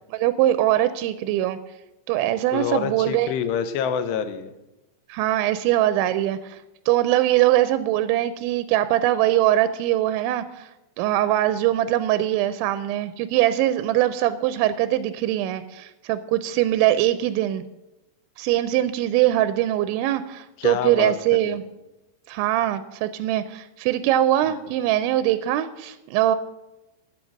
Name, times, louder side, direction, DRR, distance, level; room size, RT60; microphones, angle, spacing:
voice 1, 0.1-1.6 2.1-3.3 5.1-6.6 6.9-10.7 11.0-17.6 18.4-21.6 22.3-26.4, right 13 dB, 85° right, 12 dB, 2.9 m, -22 dB
voice 2, 2.5-4.6 20.6-21.1 21.4-21.6, left 8 dB, 80° left, 10 dB, 2.7 m, -27 dB
10.5 x 8.6 x 6.4 m, 0.96 s
omnidirectional pair, 5.3 m